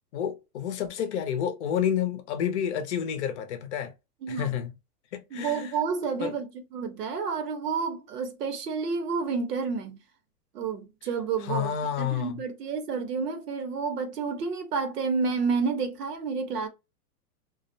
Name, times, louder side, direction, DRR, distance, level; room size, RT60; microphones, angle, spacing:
voice 1, 0.1-3.9 4.3-4.7 5.1-5.8 6.2-6.3 11.4-12.4, left 9 dB, 50° left, 0.6 m, -30 dB
voice 2, 5.3-10.0 10.5-16.7, right 5 dB, 80° right, 1.0 m, -30 dB
2.4 x 2.0 x 2.5 m
hypercardioid pair, 155°, 46 cm